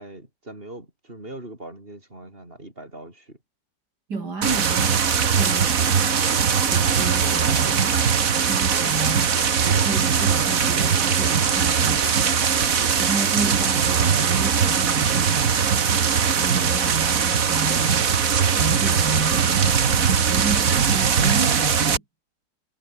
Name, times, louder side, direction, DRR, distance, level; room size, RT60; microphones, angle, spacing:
voice 1, 0.0-3.4 7.2-7.4 12.7-13.1, right 1 dB, 30° right, 7.4 m, -41 dB
voice 2, 4.1-5.1 5.3-5.8 6.7-7.9 8.4-9.3 9.6-12.0 13.0-15.8 16.4-18.3 18.6-22.0, right 4 dB, 70° right, 4.0 m, -31 dB
sound 1, 4.4-22.0, right 7 dB, 55° right, 1.9 m, -20 dB
omnidirectional pair, 1.8 m